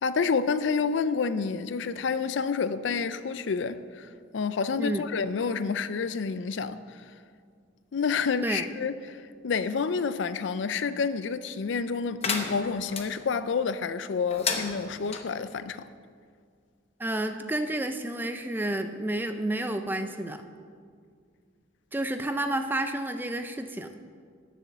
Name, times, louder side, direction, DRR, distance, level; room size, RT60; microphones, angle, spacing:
voice 1, 0.0-7.0 7.9-15.9, left 5 dB, 70° left, 0.4 m, -29 dB
sound 1, 12.2-13.1 14.3-15.2, left 5 dB, 30° left, 0.8 m, -32 dB
voice 2, 17.0-20.4 21.9-23.9, right 1 dB, 10° right, 0.4 m, -30 dB
9.6 x 7.1 x 6.9 m
head